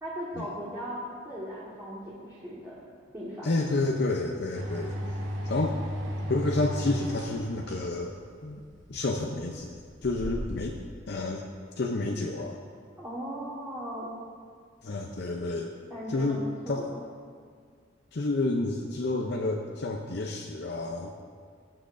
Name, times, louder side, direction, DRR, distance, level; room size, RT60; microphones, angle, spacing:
voice 1, 0.0-2.8 3.1-3.6 13.0-14.2 15.9-16.9, equal, 15° right, -8 dB, 1.5 m, -38 dB
voice 2, 3.4-5.0 5.4-5.8 6.3-8.1 8.4-8.6 8.9-10.8 11.1-11.4 11.8-12.6 14.8-15.7 16.1-16.9 18.1-21.2, left 2 dB, 55° left, 1 dB, 0.6 m, -30 dB
sound 1, 4.5-10.8, equal, 70° right, 1.6 m, -35 dB
18.0 x 7.7 x 2.6 m, 2.1 s
head